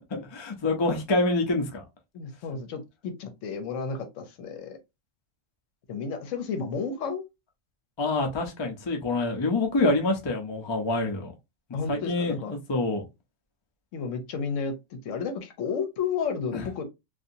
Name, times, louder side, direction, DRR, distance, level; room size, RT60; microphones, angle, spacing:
voice 1, 0.1-1.8 8.0-11.3 11.9-13.0 16.5-16.6, left 2 dB, 35° left, 0.4 m, -26 dB
voice 2, 2.1-4.8 5.9-7.2 11.7-12.5 13.9-16.8, left 5 dB, 75° left, 1.0 m, -32 dB
2.7 x 2.5 x 2.5 m
omnidirectional pair, 1.4 m